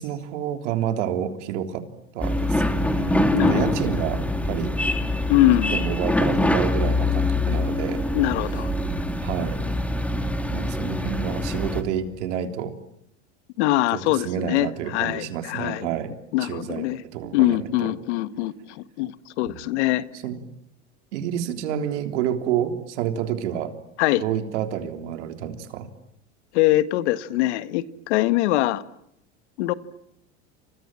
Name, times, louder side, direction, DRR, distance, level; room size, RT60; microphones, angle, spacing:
voice 1, 0.0-1.9 2.1-4.8 5.7-8.0 9.2-9.6 10.5-12.7 13.9-16.1 16.4-16.9 17.1-17.9 19.5-19.6 20.2-20.4 21.1-23.7 24.1-25.9, right 9 dB, 75° right, 3.6 m, -29 dB
sound 1, 2.2-11.8, left 1 dB, 5° left, 2.8 m, -24 dB
voice 2, 3.3-3.7 5.3-5.8 8.1-8.7 13.6-15.9 16.3-17.0 17.3-19.1 19.4-20.0 24.0-24.2 26.5-28.8 29.6-29.7, left 16 dB, 70° left, 1.7 m, -23 dB
29.5 x 27.0 x 7.6 m
hypercardioid pair, 100°, 35 cm